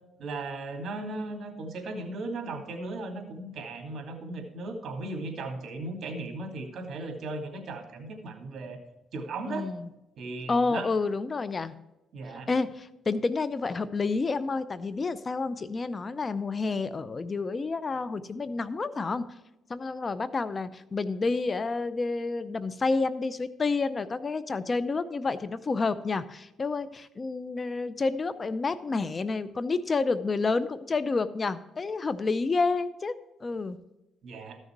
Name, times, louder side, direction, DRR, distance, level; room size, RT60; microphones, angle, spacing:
voice 1, 0.2-8.8 9.1-9.7 10.2-10.9 12.1-12.5 34.2-34.6, right 2 dB, 60° right, 3 dB, 2.8 m, -37 dB
voice 2, 9.5-9.9 10.5-11.7 12.5-19.3 19.7-33.8, left 3 dB, 35° left, 14 dB, 0.6 m, -29 dB
14.0 x 6.5 x 4.7 m, 0.98 s
cardioid pair, 90°, 0 cm